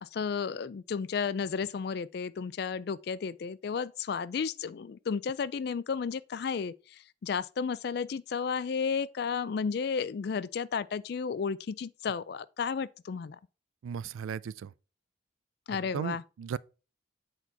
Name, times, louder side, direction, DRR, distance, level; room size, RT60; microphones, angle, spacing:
voice 1, 0.0-13.4 15.7-16.2, left 6 dB, 55° left, 0.3 m, -33 dB
voice 2, 13.8-14.7 15.7-16.6, right 7 dB, 90° right, 0.3 m, -36 dB
8.2 x 4.2 x 4.5 m
head